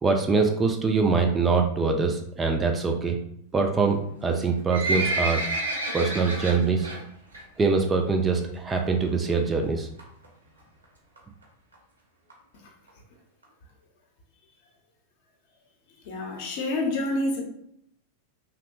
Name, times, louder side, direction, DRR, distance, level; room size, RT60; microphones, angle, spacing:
voice 1, 0.0-3.2 3.5-5.4 5.9-6.9 7.6-9.9, right 4 dB, 15° right, 3 dB, 0.3 m, -23 dB
Livestock farm animals working animals, 4.3-7.0 7.3-7.6 7.9-8.0 8.7-8.8 9.1-9.2 9.4-9.5 10.0-10.3 10.8-10.9 11.2-11.3 11.4-11.5 11.7-11.8 12.3-12.4 12.9-13.0 13.4-13.5, right 2 dB, 75° right, 0.7 m, -29 dB
voice 2, 16.0-17.4, left 2 dB, 50° left, 0 dB, 0.6 m, -27 dB
2.7 x 2.1 x 2.4 m, 0.70 s
figure-of-eight pair, 90°, 0 cm